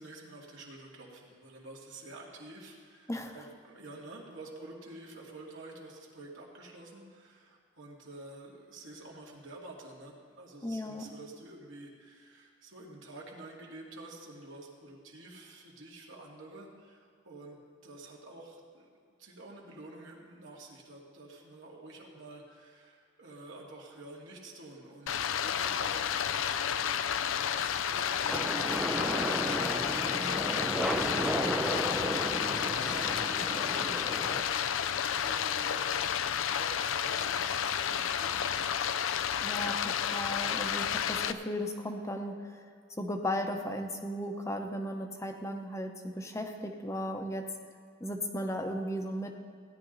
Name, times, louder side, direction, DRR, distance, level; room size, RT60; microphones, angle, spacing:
voice 1, 0.0-17.6 17.8-18.9 19.2-38.8, right 2 dB, 70° right, -2 dB, 2.2 m, -49 dB
voice 2, 10.6-11.1 39.4-42.6 43.0-47.5 48.0-49.4, equal, 15° left, 5 dB, 0.8 m, -36 dB
Stream, 25.1-41.3, left 8 dB, 75° left, 0.4 m, -31 dB
sound 1, 28.3-34.4, right 1 dB, 5° right, 0.4 m, -34 dB
16.5 x 10.5 x 4.0 m, 2.1 s
head